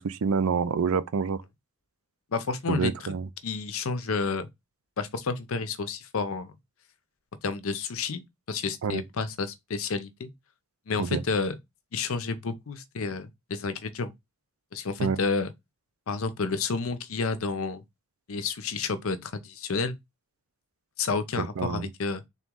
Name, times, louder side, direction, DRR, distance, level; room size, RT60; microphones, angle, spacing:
voice 1, 0.0-1.4 2.7-3.3 8.8-9.0 11.0-11.2 15.0-15.2 21.4-21.9, right 5 dB, 70° right, 0.5 m, -27 dB
voice 2, 2.3-2.9 3.4-4.5 5.0-6.5 7.4-10.3 10.9-11.6 11.9-14.1 14.7-15.5 16.1-17.8 18.3-20.0 21.0-22.2, left 4 dB, 65° left, 0.6 m, -30 dB
3.8 x 3.0 x 3.6 m
head